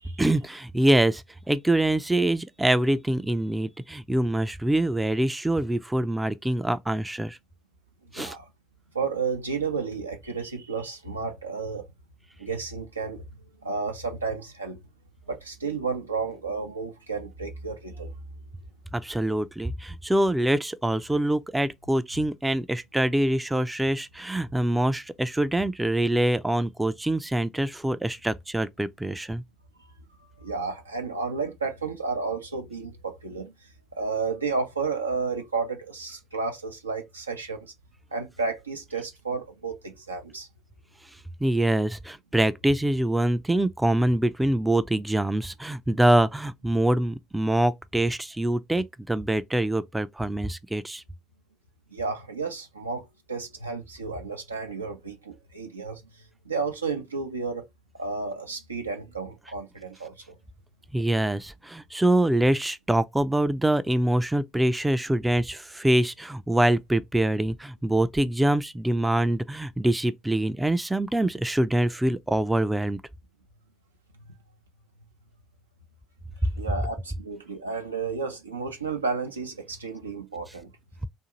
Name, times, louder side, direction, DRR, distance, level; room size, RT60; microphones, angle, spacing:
voice 1, 0.2-7.4 8.1-8.4 18.9-29.4 41.4-51.0 60.9-73.0 76.4-76.5, right 1 dB, 10° right, 0.3 m, -24 dB
voice 2, 8.1-8.5 8.9-11.8 12.4-13.2 13.6-14.8 15.3-18.1 29.8-29.9 30.4-33.5 33.9-37.7 38.1-40.5 51.9-56.0 56.5-57.7 58.0-60.3 76.6-80.7, right 4 dB, 90° right, 0.5 m, -32 dB
2.6 x 2.4 x 2.9 m
figure-of-eight pair, 55°, 0 cm